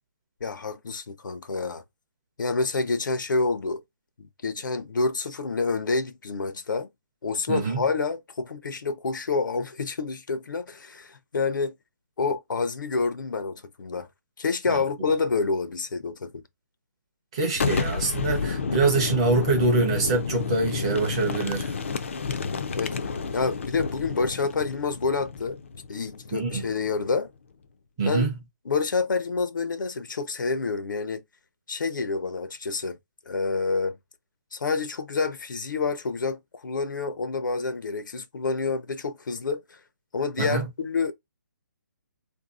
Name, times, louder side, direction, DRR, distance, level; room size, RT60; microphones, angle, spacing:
voice 1, 0.4-1.8 2.4-3.8 4.2-6.9 7.2-11.7 12.2-14.1 14.4-16.4 22.7-23.0 23.3-25.6 25.9-27.3 28.1-28.3 28.7-31.2 31.7-33.0 33.3-34.0 34.5-39.8 40.1-41.1, left 4 dB, 85° left, 0.7 m, -28 dB
voice 2, 7.5-7.8 14.7-14.8 17.3-21.8 26.3-26.7 28.0-28.4 40.4-40.7, right 3 dB, 15° right, 0.5 m, -25 dB
Boom, 17.5-27.1, left 5 dB, 40° left, 0.4 m, -31 dB
3.6 x 2.6 x 2.4 m
hypercardioid pair, 175°, 10 cm